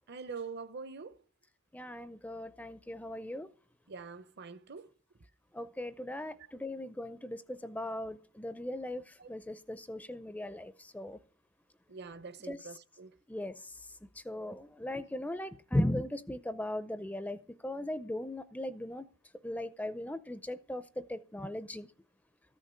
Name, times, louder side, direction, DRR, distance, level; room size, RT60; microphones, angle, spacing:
voice 1, 0.1-1.1 3.9-4.9 9.2-9.3 11.9-13.1, right 5 dB, 50° right, 0.8 m, -44 dB
voice 2, 1.7-3.5 5.5-11.2 12.4-12.7 13.3-13.7 14.2-19.0 19.4-21.9, left 1 dB, 5° left, 0.5 m, -38 dB
14.0 x 6.5 x 8.2 m
head